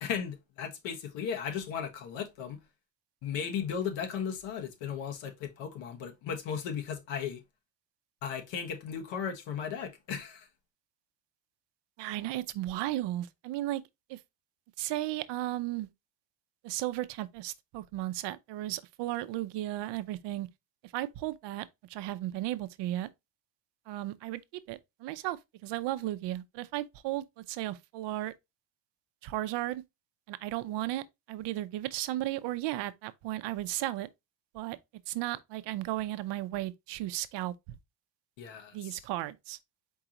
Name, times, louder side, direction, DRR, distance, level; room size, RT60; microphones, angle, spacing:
voice 1, 0.0-2.6 3.2-7.4 8.2-10.5 38.4-39.0, left 7 dB, 70° left, 1.3 m, -36 dB
voice 2, 12.0-13.8 14.1-14.2 14.8-15.9 16.6-20.5 20.9-23.1 23.9-28.3 29.2-29.8 30.3-34.1 34.5-34.8 35.1-37.8 38.7-39.6, right 15 dB, 60° right, 0.6 m, -35 dB
4.7 x 3.7 x 2.9 m
cardioid pair, 120°, 47 cm